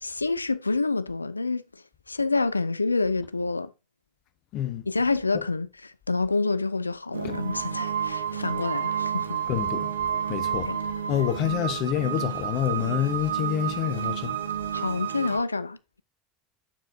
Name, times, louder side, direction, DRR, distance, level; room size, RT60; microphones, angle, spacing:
voice 1, 0.0-1.8 2.1-3.7 4.9-5.7 6.1-9.4 10.7-10.8 14.7-16.0, left 3 dB, 85° left, 0.3 m, -27 dB
voice 2, 4.5-4.9 7.2-7.4 9.5-10.7 11.1-14.4, left 11 dB, 50° left, 0.8 m, -28 dB
sound 1, 7.1-15.4, right 8 dB, 75° right, 0.7 m, -30 dB
7.3 x 6.8 x 2.6 m
figure-of-eight pair, 70°, 0 cm